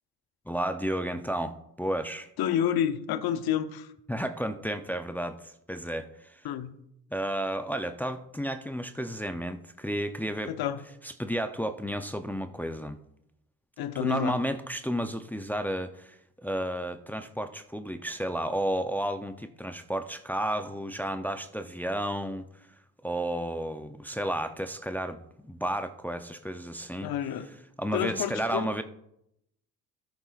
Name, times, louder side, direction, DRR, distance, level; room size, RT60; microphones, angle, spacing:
voice 1, 0.5-2.3 4.1-6.4 7.1-10.5 11.0-13.0 14.0-16.2 16.4-22.5 23.0-27.1 27.8-28.8, right 1 dB, 5° left, 0.6 m, -32 dB
voice 2, 2.4-3.9 6.4-6.7 10.5-10.8 13.8-14.4 27.0-27.5 27.9-28.7, left 10 dB, 65° left, 0.9 m, -29 dB
13.0 x 7.1 x 2.5 m
supercardioid pair, 65°, 39 cm